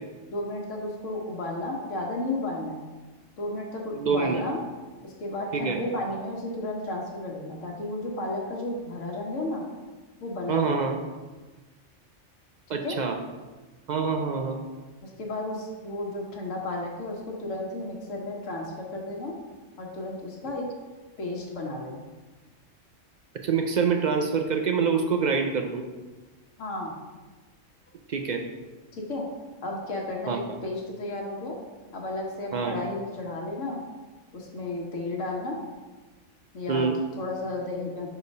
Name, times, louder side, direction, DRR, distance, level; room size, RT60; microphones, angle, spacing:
voice 1, 0.3-2.8 3.4-4.6 5.0-9.7 10.2-10.8 12.7-13.0 15.0-19.3 19.8-20.7 21.2-22.1 26.6-27.0 28.9-29.3 29.6-31.6 31.9-33.8 34.3-35.6 36.5-36.9 37.2-38.1, left 2 dB, 80° left, -1 dB, 1.4 m, -33 dB
voice 2, 4.0-4.4 5.5-5.8 10.5-11.0 12.7-13.2 13.9-14.6 23.3-25.8 28.1-28.4 30.3-30.4 32.5-32.8 36.7-37.0, right 5 dB, 60° right, 4 dB, 0.5 m, -26 dB
5.0 x 4.3 x 5.3 m, 1.3 s
omnidirectional pair, 1.3 m